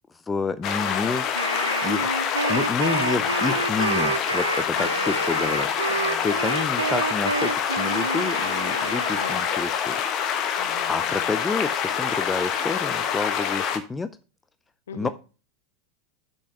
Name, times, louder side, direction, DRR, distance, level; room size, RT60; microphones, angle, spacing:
voice 1, 0.3-1.3 1.8-2.2 2.5-5.7 6.2-10.0 10.9-14.1 14.9-15.1, left 4 dB, 15° left, 13 dB, 0.5 m, -29 dB
sound 1, 0.6-13.8, left 8 dB, 40° left, 1.3 m, -26 dB
Wind instrument woodwind instrument, 1.3-9.7, right 4 dB, 85° right, 0.6 m, -29 dB
voice 2, 2.8-3.6 4.8-6.2 9.1-9.4 10.6-11.4 14.9-15.1, left 7 dB, 70° left, 10 dB, 1.1 m, -40 dB
6.8 x 5.4 x 6.0 m, 0.35 s
figure-of-eight pair, 85°, 0 cm